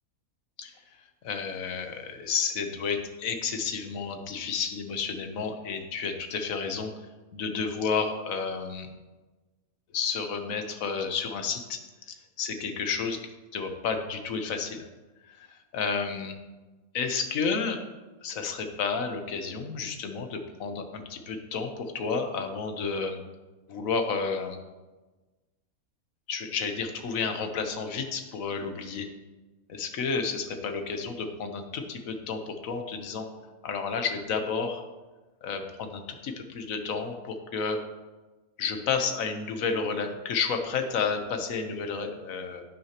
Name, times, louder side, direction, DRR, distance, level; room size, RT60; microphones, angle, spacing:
voice 1, 1.2-6.9 7.3-8.9 9.9-11.8 12.1-13.2 13.5-14.9 15.3-16.3 16.9-17.8 18.2-23.2 23.7-24.6 26.3-29.1 29.7-33.3 33.6-34.8 35.4-37.8 38.6-42.6, left 5 dB, 70° left, 5 dB, 1.4 m, -31 dB
11.5 x 9.6 x 3.0 m, 1.2 s
omnidirectional pair, 1.5 m